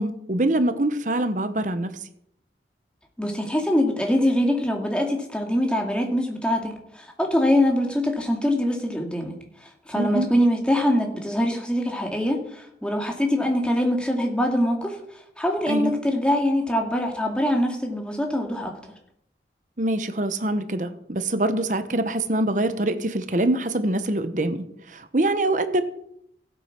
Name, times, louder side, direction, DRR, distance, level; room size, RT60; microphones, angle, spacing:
voice 1, 0.0-1.9 10.0-10.3 15.7-15.9 19.8-24.6 24.9-25.8, right 1 dB, 45° right, 10 dB, 1.1 m, -24 dB
voice 2, 3.2-9.4 9.9-15.0 15.4-18.8, left 1 dB, 5° left, 2 dB, 2.3 m, -23 dB
15.5 x 8.7 x 6.0 m, 0.74 s
head